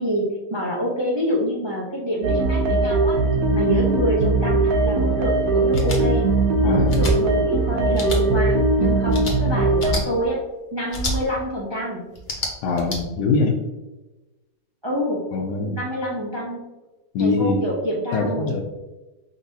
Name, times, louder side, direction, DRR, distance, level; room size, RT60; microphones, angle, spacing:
voice 1, 0.0-3.2 3.5-6.3 6.7-10.4 10.7-12.0 14.8-15.2 15.7-16.6 17.2-18.5, equal, 40° right, -3 dB, 0.3 m, -26 dB
sound 1, 2.2-10.0, right 2 dB, 65° right, 1.2 m, -20 dB
sound 2, 5.7-6.0 6.9-7.1 7.9-8.2 9.1-9.3 9.8-10.0 10.9-11.1 12.1-13.0, equal, 35° left, 1.0 m, -27 dB
voice 2, 6.6-7.1 12.6-13.6 15.3-15.8 17.1-17.8 18.1-18.6, left 3 dB, 75° left, 1 dB, 1.2 m, -23 dB
4.9 x 4.0 x 2.7 m, 1.1 s
omnidirectional pair, 1.8 m